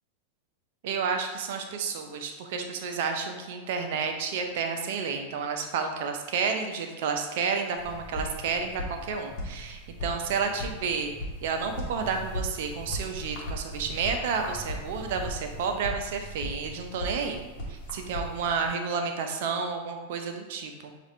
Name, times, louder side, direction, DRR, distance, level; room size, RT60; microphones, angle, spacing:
voice 1, 0.8-11.1 11.4-17.4 17.7-20.9, right 5 dB, 50° right, 4 dB, 0.6 m, -31 dB
sound 1, 7.8-18.7, equal, 40° left, 1.0 m, -38 dB
6.5 x 2.5 x 3.1 m, 1.3 s
figure-of-eight pair, 90°, 0 cm